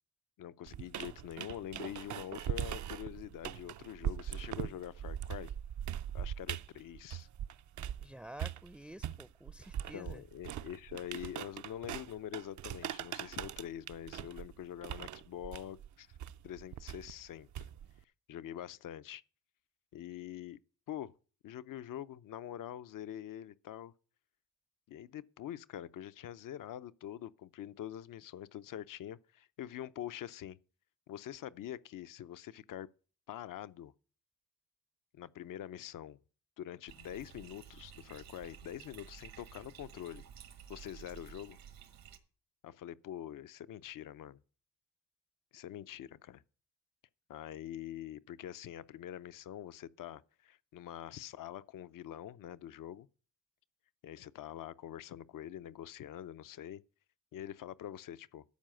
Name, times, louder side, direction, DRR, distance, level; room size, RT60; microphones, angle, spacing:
voice 1, 0.4-5.5 6.1-7.3 9.9-16.2 16.4-17.7 18.3-19.2 19.9-20.6 20.9-21.1 21.4-23.9 24.9-30.6 31.1-32.9 33.3-33.9 35.1-36.2 36.6-40.2 40.7-41.6 42.6-44.4 45.5-46.4 47.3-53.1 54.0-56.8 57.3-58.4, left 11 dB, 70° left, 0.6 m, -45 dB
sound 1, 0.7-8.1 8.4-18.0, right 10 dB, 60° right, 0.5 m, -41 dB
voice 2, 8.0-10.2, right 1 dB, 5° right, 0.5 m, -50 dB
Bathtub (filling or washing), 36.9-42.2, right 9 dB, 80° right, 1.4 m, -53 dB
12.5 x 4.8 x 7.6 m
cardioid pair, 75°, 34 cm